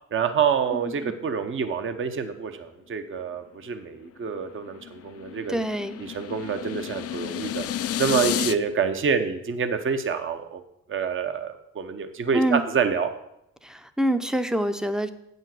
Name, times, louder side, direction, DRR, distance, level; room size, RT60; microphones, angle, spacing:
voice 1, 0.1-5.6 6.0-7.6 8.0-10.6 10.9-13.1, right 6 dB, 40° right, 8 dB, 0.9 m, -27 dB
voice 2, 0.7-1.1 5.5-6.0 12.3-12.6 13.6-15.1, right 1 dB, ahead, 10 dB, 0.6 m, -26 dB
sound 1, 4.3-8.5, left 11 dB, 50° left, 0.5 m, -31 dB
8.1 x 5.4 x 7.6 m, 0.80 s
cardioid pair, 90°, 30 cm